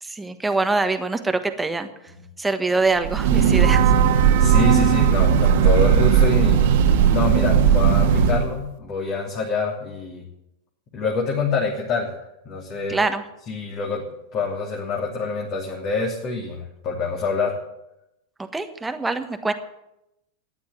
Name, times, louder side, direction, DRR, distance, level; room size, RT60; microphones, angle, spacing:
voice 1, 0.0-1.9 2.4-3.9 12.9-13.2 18.4-19.5, right 3 dB, 10° right, 8 dB, 1.3 m, -24 dB
Breathing / Train, 3.0-8.5, right 7 dB, 50° right, 1.6 m, -17 dB
voice 2, 4.4-6.6 7.1-10.2 10.9-12.2 12.4-13.0 13.5-14.0 14.3-17.6, left 4 dB, 35° left, -2 dB, 3.0 m, -26 dB
14.5 x 10.5 x 7.8 m, 0.86 s
figure-of-eight pair, 90°, 0 cm